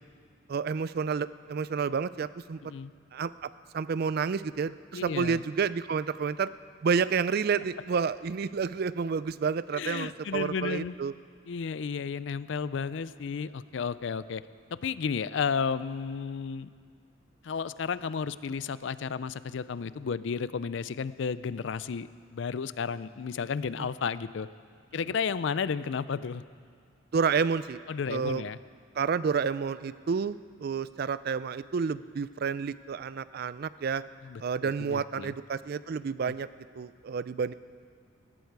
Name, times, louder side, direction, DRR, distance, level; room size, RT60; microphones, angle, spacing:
voice 1, 0.5-2.6 3.1-6.5 6.8-11.1 23.8-23.9 27.1-27.8 28.1-28.4 29.0-34.0 34.4-36.5 36.8-37.5, right 5 dB, 50° right, 16 dB, 0.4 m, -30 dB
voice 2, 4.9-5.4 9.7-11.0 11.5-14.4 14.7-16.7 17.4-24.5 24.9-26.4 27.9-28.6 34.2-35.3 36.2-36.3, left 6 dB, 60° left, 16 dB, 0.4 m, -33 dB
19.5 x 15.0 x 4.7 m, 2.1 s
head